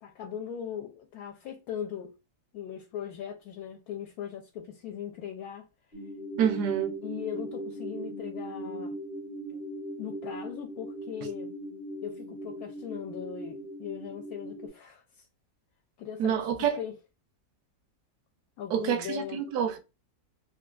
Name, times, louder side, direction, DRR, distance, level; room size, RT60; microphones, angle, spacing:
voice 1, 0.0-2.1 2.5-5.7 7.0-8.9 9.5-9.6 10.0-11.5 12.0-15.3 16.0-16.5 16.8-16.9 18.6-19.4, left 9 dB, 75° left, 1.1 m, -39 dB
sound 1, 5.9-14.7, equal, 35° left, 0.8 m, -39 dB
voice 2, 6.4-7.0 16.2-16.8 18.7-19.8, right 9 dB, 90° right, 1.2 m, -27 dB
3.2 x 2.5 x 2.2 m
omnidirectional pair, 1.7 m